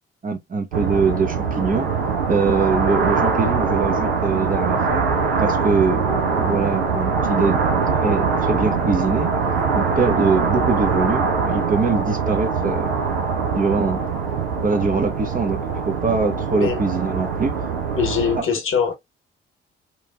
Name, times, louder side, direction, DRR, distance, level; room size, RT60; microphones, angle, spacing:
voice 1, 0.2-1.9 2.3-5.0 5.4-9.3 9.7-13.1 13.5-14.0 14.6-17.5 18.3-18.5, right 4 dB, 30° right, 0.7 m, -23 dB
sound 1, 0.7-18.4, right 5 dB, 80° right, 0.6 m, -22 dB
voice 2, 17.9-19.0, left 7 dB, 45° left, 1.0 m, -22 dB
3.0 x 2.5 x 2.2 m
figure-of-eight pair, 40°, 29 cm